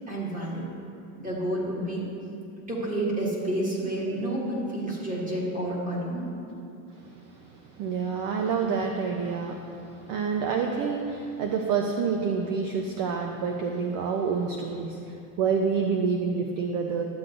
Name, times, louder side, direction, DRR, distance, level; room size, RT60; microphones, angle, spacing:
voice 1, 0.1-0.7 1.2-2.0 2.7-6.2, right 1 dB, 15° right, -5 dB, 1.9 m, -29 dB
voice 2, 7.0-17.0, right 5 dB, 45° right, 3 dB, 0.6 m, -28 dB
12.0 x 7.8 x 2.5 m, 2.6 s
supercardioid pair, 125°, 49 cm